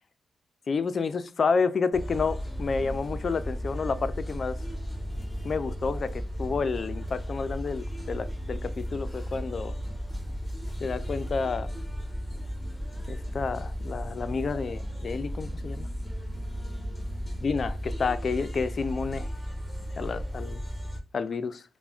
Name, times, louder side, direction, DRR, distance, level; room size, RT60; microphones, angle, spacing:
voice 1, 0.7-4.6 5.4-9.7 10.8-11.7 13.1-15.9 17.4-19.3 20.0-20.6 21.1-21.6, left 5 dB, 55° left, 0.3 m, -30 dB
sound 1, 1.9-21.0, equal, 15° left, 1.0 m, -35 dB
3.4 x 2.0 x 2.4 m
cardioid pair, 60°, 0 cm